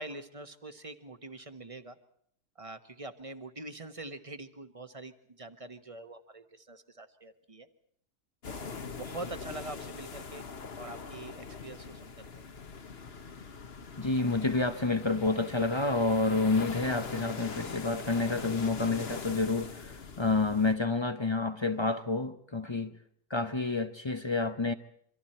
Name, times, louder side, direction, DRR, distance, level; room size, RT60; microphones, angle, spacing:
voice 1, 0.0-2.0 2.6-7.7 8.5-10.5 10.8-12.3, right 2 dB, 25° right, 9 dB, 1.1 m, -44 dB
sound 1, 8.4-20.7, left 5 dB, 40° left, 1.3 m, -42 dB
voice 2, 14.0-23.0 23.3-24.7, left 3 dB, 25° left, 10 dB, 0.6 m, -29 dB
27.0 x 24.5 x 4.4 m, 0.68 s
omnidirectional pair, 1.7 m